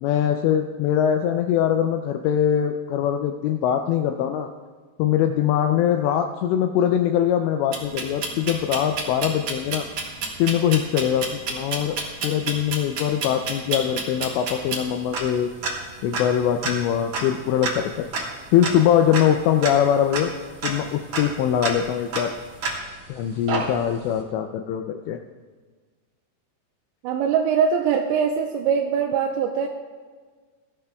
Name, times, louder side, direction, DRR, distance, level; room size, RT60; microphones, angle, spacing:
voice 1, 0.0-4.5 5.0-9.9 10.4-12.0 12.2-15.5 16.0-18.1 18.5-20.3 20.6-22.3 23.1-25.2, left 9 dB, 85° left, 6 dB, 2.6 m, -22 dB
sound 1, 7.7-23.1 23.5-24.1, right 3 dB, 55° right, 2.1 m, -31 dB
voice 2, 27.0-29.7, right 7 dB, 80° right, 2 dB, 2.7 m, -22 dB
19.5 x 13.0 x 2.3 m, 1.5 s
omnidirectional pair, 5.4 m